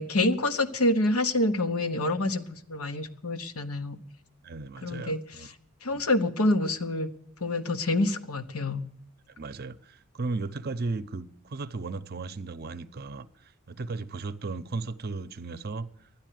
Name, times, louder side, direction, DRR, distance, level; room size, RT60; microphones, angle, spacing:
voice 1, 0.0-4.0 4.8-5.2 5.8-7.1 7.4-8.8, left 2 dB, 85° left, 1.0 m, -27 dB
voice 2, 4.4-5.5 5.9-6.0 9.4-15.9, right 3 dB, 45° right, 0.6 m, -35 dB
12.0 x 10.0 x 9.2 m
head